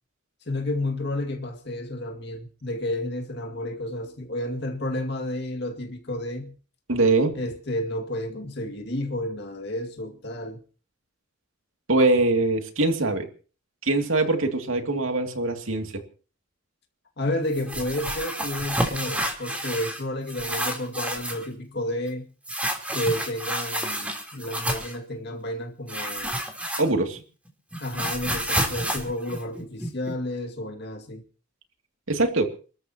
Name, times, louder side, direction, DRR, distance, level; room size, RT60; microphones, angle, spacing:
voice 1, 0.5-6.5 7.3-10.6 17.2-22.2 22.9-26.4 27.8-31.2, left 1 dB, 55° left, 2.2 m, -31 dB
voice 2, 6.9-7.4 11.9-13.3 13.8-16.0 26.8-27.2 32.1-32.5, right 2 dB, 85° right, 2.5 m, -23 dB
sound 1, 17.5-20.0 20.3-21.5 22.5-25.0 25.9-27.2 27.5-30.1, right 1 dB, 5° right, 3.4 m, -29 dB
29.0 x 13.5 x 2.9 m
head